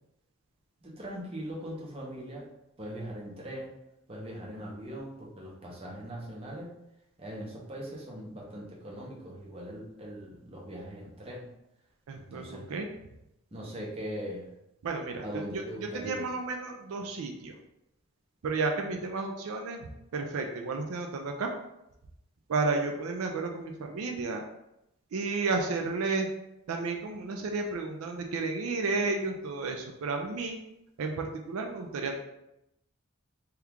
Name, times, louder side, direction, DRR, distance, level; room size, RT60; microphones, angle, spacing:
voice 1, 0.8-2.5 2.8-3.7 4.1-6.7 7.2-11.5 12.2-12.7 13.5-14.5 15.2-16.2, equal, 25° right, -3 dB, 0.6 m, -40 dB
voice 2, 12.1-12.9 14.8-15.2 15.5-15.6 15.9-17.5 18.4-21.5 22.5-24.4 25.1-26.3 26.7-30.6 31.0-32.2, right 3 dB, 75° right, 3 dB, 0.4 m, -32 dB
2.9 x 2.3 x 3.5 m, 0.85 s
head